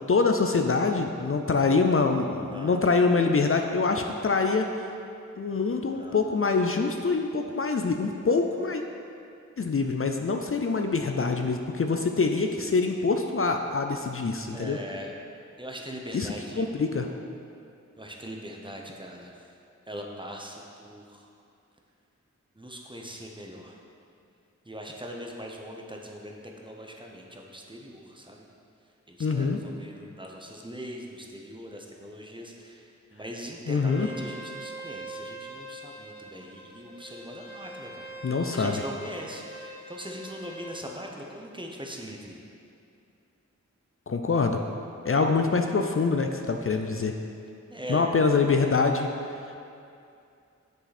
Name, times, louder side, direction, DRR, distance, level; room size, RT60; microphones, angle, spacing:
voice 1, 0.1-4.9 5.4-8.8 9.6-14.8 16.1-17.1 29.2-29.6 33.7-34.1 38.2-38.8 44.1-44.6 45.0-47.2 47.9-49.1, left 4 dB, 45° left, 4 dB, 0.5 m, -25 dB
voice 2, 2.5-2.8 5.9-6.2 14.5-15.1 15.6-16.7 18.0-19.4 19.9-21.3 22.6-23.8 24.7-26.4 26.6-28.4 29.1-38.1 38.5-42.4 47.7-48.1, equal, 15° right, 0 dB, 0.9 m, -41 dB
Bowed string instrument, 33.8-40.7, right 2 dB, 80° right, 1.6 m, -43 dB
7.5 x 6.5 x 4.2 m, 2.5 s
wide cardioid pair, 50°, 30 cm